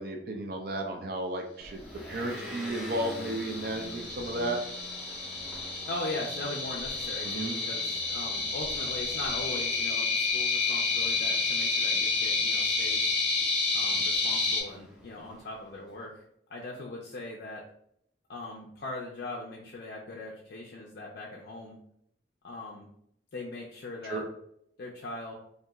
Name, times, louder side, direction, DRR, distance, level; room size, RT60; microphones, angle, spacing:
voice 1, 0.0-1.8 2.1-4.6 7.2-7.6 24.1-24.2, right 1 dB, 55° right, 3 dB, 0.4 m, -33 dB
Motor vehicle (road) / Engine, 1.6-15.8, equal, 5° right, 0.5 m, -47 dB
sound 1, 2.4-14.6, left 4 dB, 35° left, 0.7 m, -30 dB
voice 2, 5.9-13.1 13.7-16.2 16.5-17.6 18.3-21.8 22.4-22.9 23.3-24.2 24.8-25.3, left 2 dB, 60° left, -2 dB, 0.4 m, -40 dB
2.8 x 2.3 x 2.3 m, 0.71 s
head